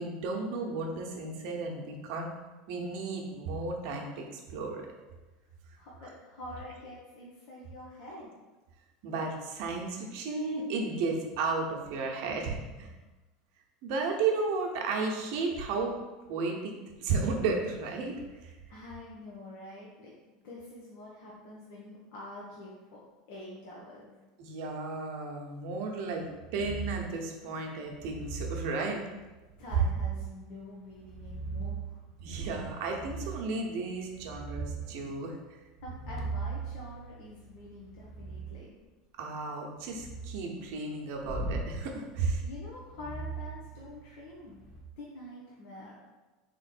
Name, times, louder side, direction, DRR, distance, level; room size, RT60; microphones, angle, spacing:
voice 1, 0.0-2.3 2.7-4.9 9.0-12.9 13.8-15.9 16.3-16.7 17.0-18.1 18.4-18.5 24.4-26.3 26.5-29.0 32.2-35.3 39.2-42.4, right 4 dB, 65° right, 1 dB, 0.9 m, -33 dB
voice 2, 5.7-8.3 18.7-20.1 20.4-24.2 29.6-32.0 35.8-38.7 42.4-44.6 45.0-46.0, left 1 dB, 65° left, -5 dB, 1.0 m, -46 dB
sound 1, 26.5-27.1 27.9-28.7 29.6-30.3 30.9-31.9 32.9-33.5 33.9-34.8 35.8-38.5 39.8-40.4 41.2-41.7 42.9-44.1 44.6-44.8, right 4 dB, 5° left, 1.1 m, -39 dB
3.6 x 3.1 x 4.3 m, 1.2 s
hypercardioid pair, 100°, 0 cm